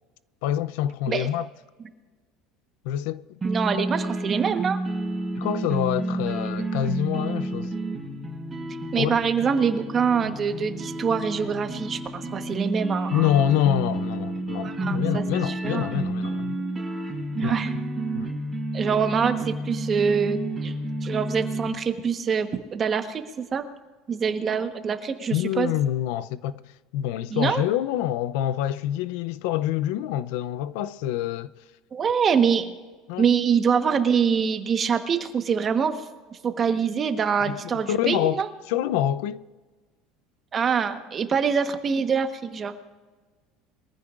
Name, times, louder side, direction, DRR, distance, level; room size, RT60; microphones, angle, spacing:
voice 1, 0.4-1.5 2.8-3.2 5.4-7.7 8.9-9.2 13.1-16.6 17.4-17.6 18.1-18.3 25.3-31.5 33.1-33.3 37.4-39.4, left 11 dB, 75° left, 0.5 m, -26 dB
sound 1, 3.4-21.7, right 2 dB, 10° right, 5.2 m, -30 dB
voice 2, 3.4-4.8 8.9-13.3 14.6-15.9 17.3-17.7 18.7-20.7 21.0-23.7 24.1-25.7 27.3-27.6 31.9-32.7 33.2-36.1 36.4-38.5 40.5-42.7, right 6 dB, 30° right, 1.2 m, -25 dB
23.0 x 15.0 x 2.5 m
cardioid pair, 140°, 0 cm